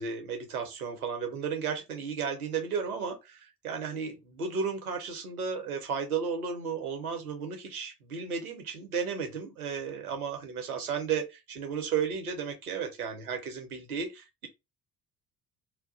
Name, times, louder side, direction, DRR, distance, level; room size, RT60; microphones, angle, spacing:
voice 1, 0.0-14.5, right 6 dB, 85° right, 0.7 m, -34 dB
2.3 x 2.0 x 3.7 m
figure-of-eight pair, 50°, 43 cm